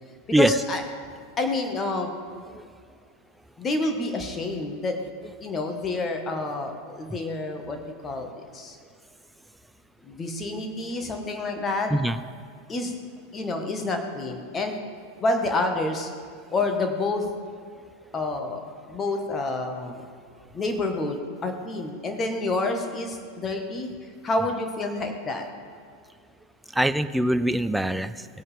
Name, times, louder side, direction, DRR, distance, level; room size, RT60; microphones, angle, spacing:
voice 1, 0.4-0.8 1.4-2.1 3.6-4.9 5.4-8.8 10.0-11.9 12.7-12.9 13.3-14.8 15.2-16.1 16.5-17.2 18.1-18.6 18.9-20.0 20.5-23.9 24.2-25.5, left 2 dB, 20° left, 4 dB, 1.6 m, -28 dB
voice 2, 26.7-28.3, right 1 dB, 5° right, 13 dB, 0.4 m, -23 dB
18.5 x 8.5 x 3.6 m, 2.1 s
figure-of-eight pair, 85°, 0 cm